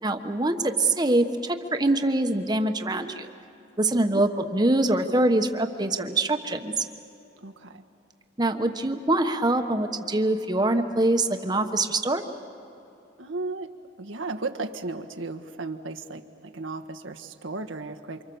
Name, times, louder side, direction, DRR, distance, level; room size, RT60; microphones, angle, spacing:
voice 1, 0.0-3.3 3.8-6.8 8.4-12.2, right 2 dB, 20° right, 6 dB, 1.2 m, -24 dB
voice 2, 7.4-7.8 13.2-13.7 14.0-18.2, right 3 dB, 85° right, 5 dB, 1.5 m, -35 dB
28.5 x 26.0 x 7.1 m, 2.8 s
head